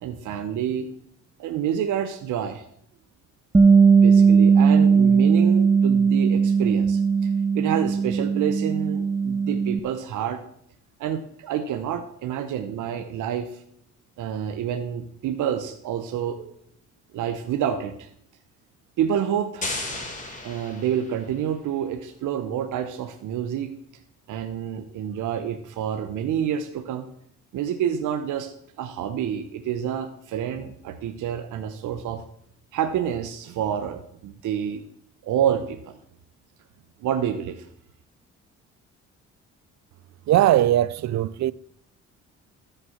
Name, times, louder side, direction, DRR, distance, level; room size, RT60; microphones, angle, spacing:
voice 1, 0.0-0.9 1.4-2.6 3.8-10.4 11.0-13.6 14.2-16.5 17.1-18.1 19.0-19.8 20.4-23.7 24.3-27.1 27.5-28.5 28.8-32.2 32.7-34.8 35.2-36.0 37.0-37.7, right 9 dB, 80° right, 1.0 m, -28 dB
Bass guitar, 3.5-9.8, right 5 dB, 10° right, 0.3 m, -18 dB
sound 1, 19.6-21.4, left 2 dB, 25° left, 3.4 m, -34 dB
voice 2, 40.3-41.5, right 13 dB, 65° right, 0.5 m, -20 dB
13.0 x 5.9 x 7.2 m
cardioid pair, 90°, 30 cm